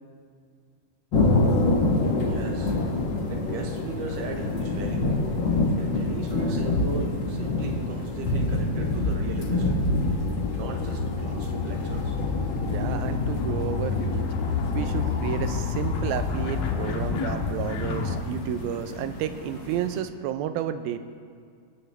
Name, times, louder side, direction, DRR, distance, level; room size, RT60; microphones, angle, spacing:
sound 1, 1.1-20.0, left 2 dB, 65° left, 1.1 m, -27 dB
voice 1, 2.3-2.8 3.3-5.1 5.8-9.8 10.6-12.2, right 5 dB, 75° right, 3 dB, 2.3 m, -37 dB
sound 2, 5.8-18.2, left 5 dB, 80° left, 3.0 m, -31 dB
voice 2, 12.6-14.3 14.7-21.0, right 10 dB, 90° right, 10 dB, 2.5 m, -31 dB
27.5 x 9.5 x 3.4 m, 2.2 s
omnidirectional pair, 4.2 m